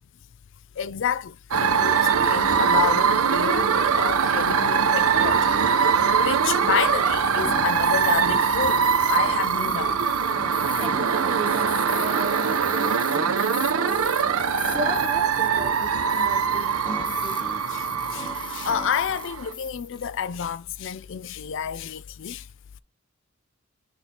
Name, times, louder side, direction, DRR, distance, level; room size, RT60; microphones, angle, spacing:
voice 1, 0.8-5.5 5.9-10.0 17.7-22.5, left 8 dB, 55° left, 0.4 m, -30 dB
sound 1, 1.5-19.5, right 6 dB, 75° right, 0.7 m, -22 dB
sound 2, 7.4-20.5, left 5 dB, 20° left, 0.7 m, -39 dB
voice 2, 10.5-14.1 14.7-17.5, right 2 dB, 25° right, 0.5 m, -35 dB
6.6 x 5.4 x 2.8 m
head